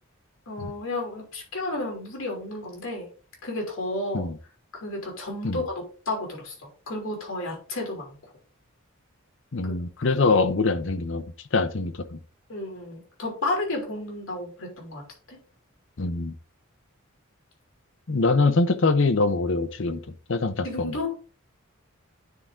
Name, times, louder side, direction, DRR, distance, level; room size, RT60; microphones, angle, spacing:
voice 1, 0.5-3.1 3.4-4.3 4.7-6.5 6.9-8.2 9.6-9.7 10.1-10.3 12.5-15.0 15.3-15.4 20.6-21.2, left 2 dB, 75° left, 0 dB, 3.1 m, -32 dB
voice 2, 9.5-11.2 11.5-12.2 16.0-16.3 18.1-20.0 20.3-21.0, left 3 dB, 60° left, 10 dB, 0.7 m, -23 dB
9.6 x 3.7 x 3.7 m, 0.38 s
head